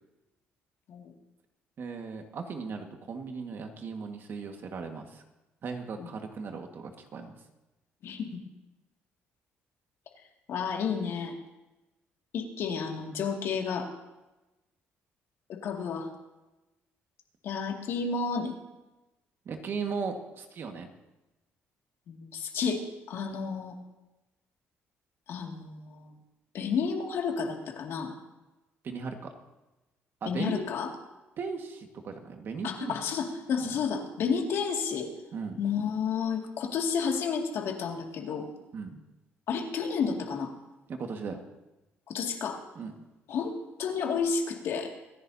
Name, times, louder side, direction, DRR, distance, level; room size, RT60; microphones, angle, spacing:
voice 1, 1.8-5.2 5.6-7.4 19.4-20.9 28.8-29.3 30.2-30.6 31.4-33.0 33.6-33.8 35.3-35.6 38.7-39.0 40.9-41.4 42.7-42.9, right 5 dB, 50° right, 4 dB, 1.7 m, -37 dB
voice 2, 10.5-11.3 12.3-13.9 15.5-16.1 17.4-18.5 22.1-22.8 23.1-23.7 25.3-26.1 26.5-28.1 30.3-30.9 32.6-35.1 35.6-38.5 39.5-40.5 42.1-42.6 43.3-43.5 43.8-44.9, left 6 dB, 70° left, 1 dB, 2.3 m, -31 dB
25.5 x 10.5 x 2.8 m, 1.0 s
cardioid pair, 100°, 5 cm